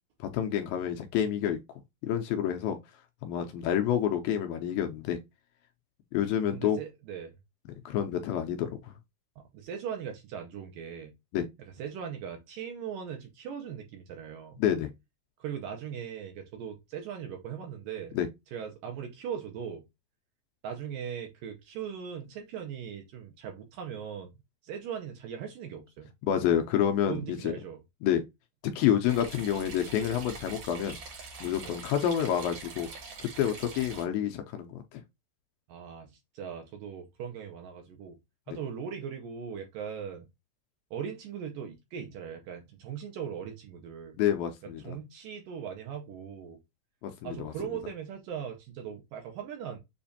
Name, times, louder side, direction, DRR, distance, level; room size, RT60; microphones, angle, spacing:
voice 1, 0.2-1.6 2.0-2.8 3.2-5.2 6.1-6.8 7.9-8.9 11.3-11.5 14.6-14.9 18.2-18.3 26.2-27.5 28.0-28.2 28.8-31.0 31.4-32.9 33.2-35.0 44.2-45.0 47.0-47.5, left 10 dB, 80° left, 2.2 m, -28 dB
voice 2, 6.5-7.3 9.4-11.1 11.8-14.6 15.4-18.2 18.5-19.8 20.6-24.3 24.6-26.1 27.1-27.8 31.6-31.8 35.7-38.2 38.5-40.3 40.9-44.2 44.8-46.6 47.2-49.8, right 8 dB, 75° right, 2.1 m, -39 dB
sound 1, 29.1-34.0, right 3 dB, 55° right, 1.7 m, -44 dB
7.0 x 2.5 x 2.7 m
omnidirectional pair, 4.5 m